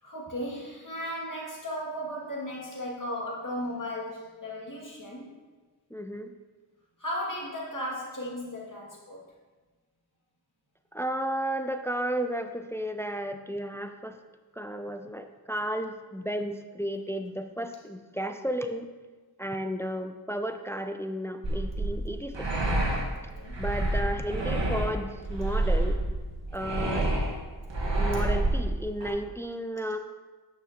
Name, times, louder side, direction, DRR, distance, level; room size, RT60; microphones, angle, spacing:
voice 1, 0.0-5.3 7.0-9.2 23.2-23.6, equal, 50° left, -4 dB, 2.3 m, -36 dB
voice 2, 5.9-6.3 10.9-14.2 14.5-18.9 19.4-22.5 23.6-26.0 26.5-27.1 28.0-30.0, equal, 5° left, 7 dB, 0.5 m, -33 dB
sound 1, 21.4-29.1, right 1 dB, 85° right, 1.5 m, -28 dB
9.2 x 6.3 x 2.9 m, 1.3 s
wide cardioid pair, 45°, 42 cm